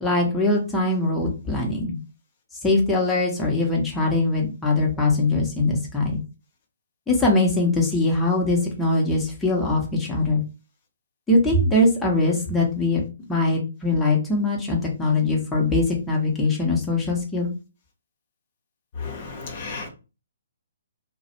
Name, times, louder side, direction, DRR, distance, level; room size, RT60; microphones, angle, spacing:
voice 1, 0.0-2.0 2.6-6.2 7.1-10.4 11.3-13.0 13.3-17.5, left 2 dB, 5° left, -3 dB, 0.7 m, -22 dB
voice 2, 19.0-19.9, left 4 dB, 45° left, 2 dB, 0.7 m, -33 dB
2.4 x 2.0 x 2.8 m, 0.31 s
figure-of-eight pair, 130°, 0 cm